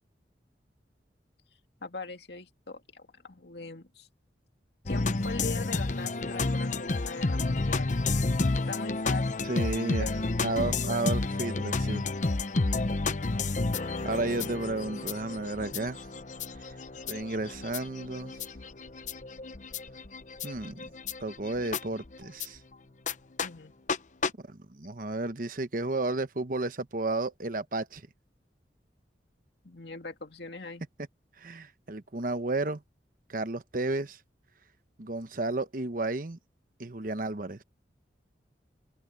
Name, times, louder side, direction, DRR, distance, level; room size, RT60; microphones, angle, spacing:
voice 1, 1.8-4.1 4.9-8.0 8.6-10.1 10.6-10.8 14.1-14.6 23.4-23.7 29.6-30.8, left 3 dB, 70° left, 2.3 m, -41 dB
sound 1, 4.9-22.5 23.1-23.2 23.4-23.5 23.9-24.0 24.2-24.3, left 3 dB, 45° left, 0.8 m, -31 dB
voice 2, 9.4-10.1 10.4-12.0 14.0-16.0 17.1-18.3 20.4-20.9 21.2-22.6 24.5-28.0 31.4-32.8 33.3-34.2 35.0-36.4 36.8-37.6, right 2 dB, 50° right, 1.1 m, -32 dB
head